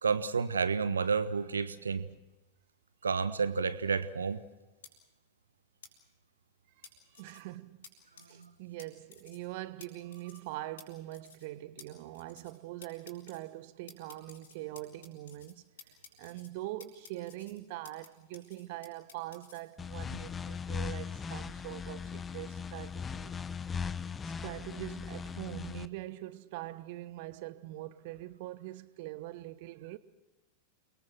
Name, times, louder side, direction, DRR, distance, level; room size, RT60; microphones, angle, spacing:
voice 1, 0.0-2.1 3.0-4.4, right 5 dB, 75° right, 1.3 m, -30 dB
sound 1, 4.8-4.9 5.8-5.9 6.8-7.4 7.8-7.9 8.2-8.5 8.8-8.9 9.1-9.5 9.8-9.9 10.1-10.5 10.8-10.9 11.1-11.5 11.8-11.9 12.1-12.6 12.8-13.4 13.9-15.5 15.8-16.5 16.8-18.1 18.3-19.6, left 6 dB, 65° left, 6.8 m, -53 dB
voice 2, 7.1-7.8 8.3-15.6 16.2-23.3 24.2-30.0, right 16 dB, 50° right, 1.2 m, -43 dB
sound 2, 19.8-25.9, left 6 dB, 20° left, 0.9 m, -39 dB
29.5 x 23.0 x 6.2 m
figure-of-eight pair, 90°, 0 cm